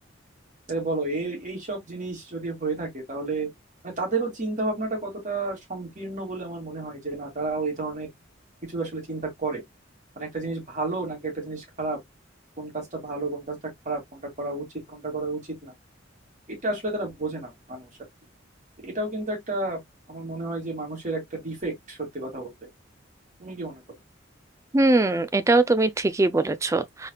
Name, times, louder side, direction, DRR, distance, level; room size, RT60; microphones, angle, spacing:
voice 1, 0.7-3.5 3.8-8.1 8.7-9.6 10.2-12.0 12.6-13.6 13.9-15.7 16.5-17.9 18.8-19.8 20.1-22.7 23.4-23.8, right 3 dB, 40° right, 2.3 m, -31 dB
voice 2, 24.7-27.1, right 2 dB, 15° right, 0.4 m, -21 dB
4.0 x 3.5 x 2.2 m
head